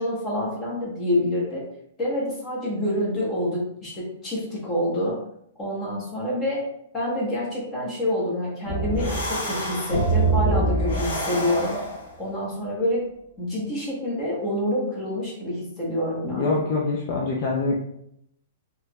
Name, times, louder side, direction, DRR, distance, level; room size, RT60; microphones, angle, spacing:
voice 1, 0.0-1.6 2.0-5.2 5.6-6.6 6.9-11.8 12.2-13.0 13.4-16.6, left 1 dB, 15° left, -5 dB, 1.0 m, -27 dB
sound 1, 8.6-12.2, right 2 dB, 85° left, 1.1 m, -25 dB
voice 2, 16.2-17.7, left 3 dB, 35° left, -2 dB, 0.4 m, -24 dB
3.3 x 3.0 x 2.3 m, 0.73 s
hypercardioid pair, 170°, 0 cm